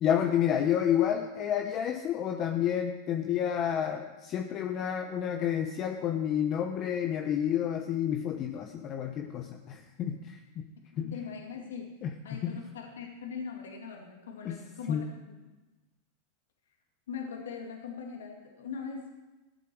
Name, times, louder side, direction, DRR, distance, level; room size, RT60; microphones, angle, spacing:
voice 1, 0.0-10.7 11.0-11.2 12.0-12.6 14.4-14.6 14.9-15.1, left 9 dB, 40° left, 4 dB, 0.9 m, -30 dB
voice 2, 11.0-12.0 12.2-15.3 17.1-19.1, left 6 dB, 85° left, 1 dB, 2.3 m, -41 dB
15.0 x 8.4 x 6.2 m, 1.1 s
hypercardioid pair, 115°, 0 cm